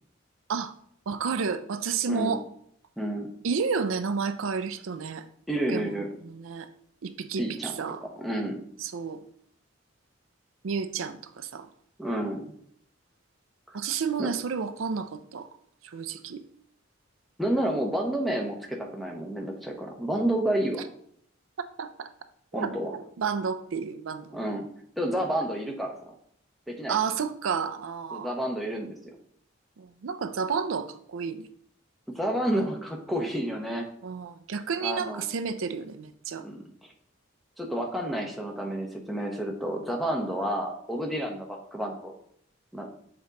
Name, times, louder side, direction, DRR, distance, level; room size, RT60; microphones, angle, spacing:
voice 1, 1.1-2.4 3.4-5.2 5.7-6.7 7.0-8.0 8.8-9.2 10.6-11.7 13.7-15.5 15.8-16.4 21.8-22.1 22.5-24.3 26.9-28.3 29.8-31.5 34.0-36.4, right 5 dB, 90° right, 10 dB, 0.5 m, -31 dB
voice 2, 3.0-3.3 5.5-6.1 7.4-7.7 8.0-8.6 12.0-12.4 13.7-13.9 14.2-14.3 17.4-20.8 22.5-22.9 24.3-24.7 25.0-26.1 26.7-27.0 28.1-29.0 32.1-33.9 34.8-35.2 36.4-36.6 37.6-42.1 42.7-42.9, right 1 dB, ahead, 1 dB, 0.8 m, -30 dB
7.0 x 3.8 x 4.0 m, 0.67 s
head